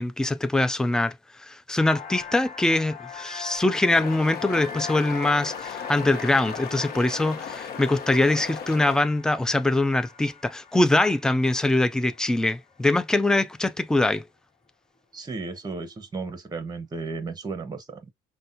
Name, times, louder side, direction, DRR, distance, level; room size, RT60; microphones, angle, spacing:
voice 1, 0.0-14.2, left 2 dB, 5° left, 0.4 m, -23 dB
sound 1, 1.8-13.4, left 6 dB, 40° left, 1.3 m, -41 dB
sound 2, 3.9-9.0, left 7 dB, 65° left, 0.9 m, -37 dB
voice 2, 15.1-18.1, right 4 dB, 25° right, 1.1 m, -34 dB
5.3 x 2.3 x 2.6 m
cardioid pair, 110°, 17 cm